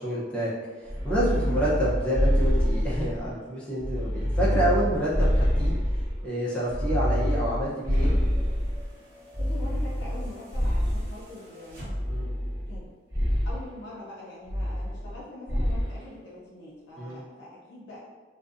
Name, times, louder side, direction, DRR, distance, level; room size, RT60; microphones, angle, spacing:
voice 1, 0.0-8.1 12.1-12.3 17.0-17.2, right 1 dB, 5° left, -9 dB, 0.6 m, -28 dB
sound 1, 0.9-3.3 3.8-6.2 6.7-8.9 9.3-11.2 11.9-12.8 13.1-13.6 14.5-15.2 15.5-15.9, equal, 20° right, 0.9 m, -26 dB
sound 2, 7.2-12.3 13.6-13.7, equal, 50° right, 0.9 m, -48 dB
voice 2, 9.4-11.8 12.7-12.8 13.4-18.0, left 1 dB, 75° left, -6 dB, 0.5 m, -43 dB
2.5 x 2.2 x 2.4 m, 1.4 s
head